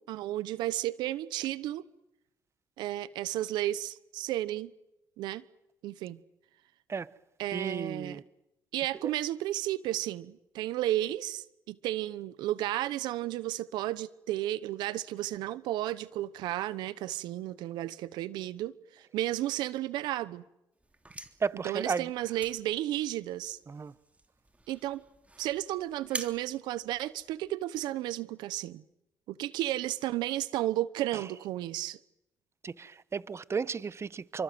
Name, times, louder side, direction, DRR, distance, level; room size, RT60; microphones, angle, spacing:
voice 1, 0.0-1.8 2.8-4.7 5.2-5.4 5.8-6.2 7.4-8.2 8.7-20.4 21.6-23.6 24.7-25.0 25.4-28.8 29.3-32.0, right 14 dB, 85° right, 1.0 m, -33 dB
voice 2, 7.5-8.2 9.0-9.1 21.4-22.1 23.7-23.9 31.1-31.2 32.6-34.4, right 5 dB, 40° right, 1.1 m, -34 dB
sound 1, 20.8-27.6, right 2 dB, 20° right, 3.4 m, -47 dB
29.5 x 24.5 x 7.8 m
supercardioid pair, 65°, 7 cm